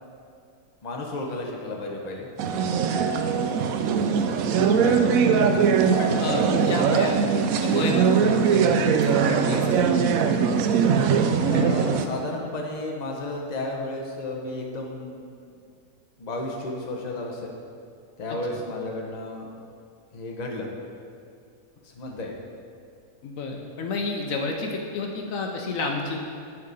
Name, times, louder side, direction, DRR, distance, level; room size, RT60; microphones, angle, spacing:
voice 1, 0.8-2.3 11.5-15.3 16.2-17.5 18.2-19.5 20.1-20.7 21.8-22.4, left 2 dB, 35° left, 0 dB, 0.9 m, -33 dB
sound 1, 2.4-12.0, right 6 dB, 75° right, 1.0 m, -21 dB
voice 2, 4.7-5.1 6.0-7.3 7.6-10.2 18.3-18.4 23.2-26.2, left 3 dB, 70° left, 2 dB, 1.1 m, -31 dB
9.6 x 4.7 x 5.3 m, 2.3 s
omnidirectional pair, 1.5 m